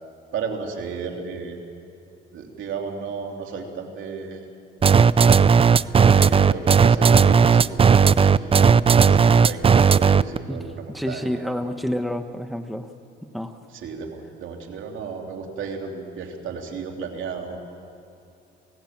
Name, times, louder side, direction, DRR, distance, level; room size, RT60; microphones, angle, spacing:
voice 1, 0.3-1.6 2.3-4.5 5.8-11.7 13.7-17.6, right 5 dB, 80° right, 2 dB, 3.1 m, -34 dB
sound 1, 4.8-10.4, right 6 dB, 30° right, 0.5 m, -15 dB
voice 2, 10.5-12.9 13.2-13.6, equal, ahead, 7 dB, 1.3 m, -29 dB
27.5 x 17.5 x 7.4 m, 2.8 s
cardioid pair, 90°, 20 cm